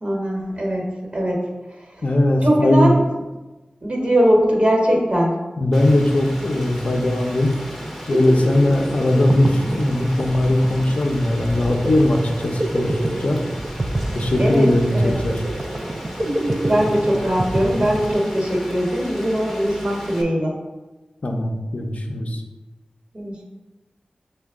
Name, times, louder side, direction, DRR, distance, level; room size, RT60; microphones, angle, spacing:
voice 1, 0.0-1.5 2.4-3.0 3.8-5.4 14.4-15.2 16.7-20.5 23.1-23.4, equal, 45° right, -1 dB, 1.1 m, -20 dB
voice 2, 2.0-2.9 5.6-7.5 8.1-13.4 14.1-15.4 21.2-22.4, left 1 dB, 60° left, 2 dB, 0.5 m, -19 dB
Rain, 5.7-20.2, equal, ahead, 0.7 m, -35 dB
sound 1, 7.8-18.6, right 1 dB, 30° right, 0.3 m, -27 dB
6.2 x 2.2 x 3.5 m, 1.1 s
wide cardioid pair, 80°, 3 cm